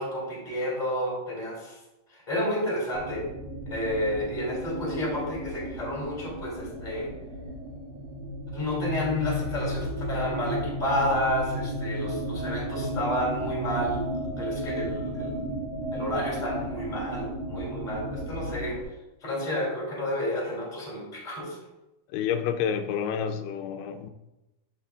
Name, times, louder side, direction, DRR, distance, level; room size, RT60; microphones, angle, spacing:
voice 1, 0.0-1.8 2.1-3.2 3.7-7.1 8.5-15.5 15.9-18.8 19.2-21.6, left 1 dB, 15° left, -4 dB, 2.5 m, -30 dB
sound 1, 2.9-18.8, equal, 60° right, 1.8 m, -34 dB
voice 2, 22.1-24.1, left 8 dB, 85° left, 7 dB, 2.5 m, -29 dB
11.5 x 7.1 x 2.4 m, 0.97 s
omnidirectional pair, 4.6 m